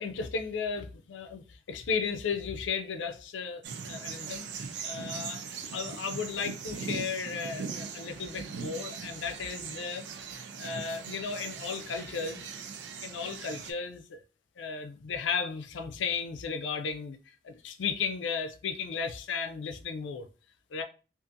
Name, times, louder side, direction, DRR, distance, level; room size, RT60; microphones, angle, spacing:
voice 1, 0.0-10.1 10.3-12.5 13.0-14.2 14.6-20.3 20.7-20.8, left 5 dB, 85° left, 0.4 m, -35 dB
sound 1, 3.6-13.7, right 5 dB, 70° right, 0.4 m, -40 dB
2.5 x 2.4 x 2.6 m
head